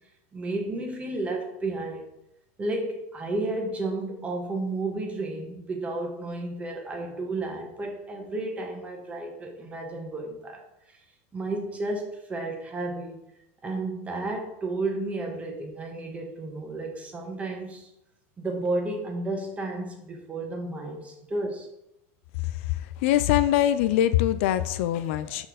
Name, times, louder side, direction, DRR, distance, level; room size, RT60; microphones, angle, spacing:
voice 1, 0.3-2.0 2.6-10.6 11.3-13.2 13.6-17.9 18.4-21.7, right 2 dB, 20° right, 2 dB, 1.4 m, -32 dB
voice 2, 23.0-25.5, left 12 dB, 65° left, 13 dB, 0.4 m, -23 dB
6.1 x 4.4 x 5.0 m, 0.84 s
supercardioid pair, 135°, 7 cm